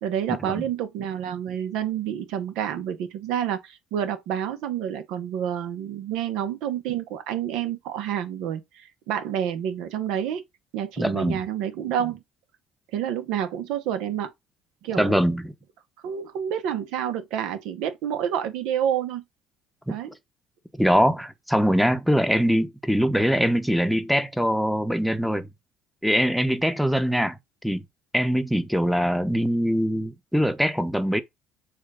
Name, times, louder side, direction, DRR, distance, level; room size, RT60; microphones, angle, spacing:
voice 1, 0.0-10.4 10.7-12.2 12.9-14.3 14.8-15.2 16.0-19.2 19.9-20.1, right 9 dB, 80° right, 1.1 m, -28 dB
voice 2, 11.0-11.4 15.0-15.5 19.9-20.0 20.8-25.5 26.0-27.4 27.6-27.8 28.1-31.2, equal, ahead, 0.9 m, -22 dB
7.2 x 2.6 x 5.0 m
cardioid pair, 105°, 0 cm